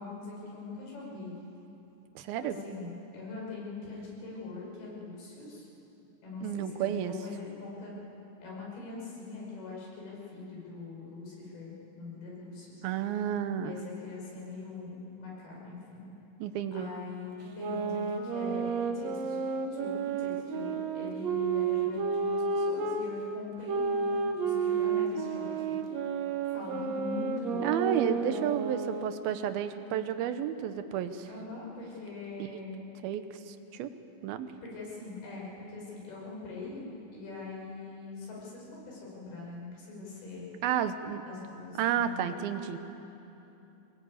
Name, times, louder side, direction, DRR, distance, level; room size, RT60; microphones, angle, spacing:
voice 1, 0.0-1.4 2.4-5.7 6.2-7.9 8.4-12.8 13.6-16.1 16.7-19.4 19.7-25.8 26.5-27.8 31.3-32.8 34.6-36.9 37.1-40.5 41.3-42.3, left 4 dB, 80° left, -3 dB, 7.4 m, -42 dB
voice 2, 2.2-2.6 6.4-7.1 12.8-13.7 16.4-16.9 27.6-31.3 33.0-33.9 34.2-34.5 40.6-41.2 41.8-42.8, right 9 dB, 80° right, 9 dB, 2.8 m, -31 dB
sound 1, 17.4-23.1 23.7-29.3, right 5 dB, 65° right, 1.8 m, -31 dB
23.0 x 20.0 x 8.6 m, 3.0 s
omnidirectional pair, 4.4 m